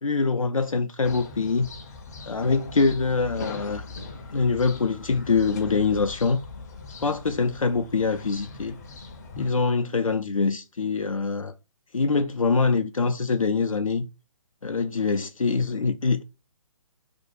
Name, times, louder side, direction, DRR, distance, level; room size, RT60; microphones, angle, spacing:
voice 1, 0.0-1.7 2.3-3.8 4.3-6.4 7.0-8.8 9.4-11.5 11.9-14.1 14.6-16.2, left 4 dB, 85° left, 0.4 m, -24 dB
sound 1, 1.0-9.5, left 3 dB, 30° left, 0.5 m, -40 dB
2.7 x 2.2 x 4.0 m
figure-of-eight pair, 135°, 17 cm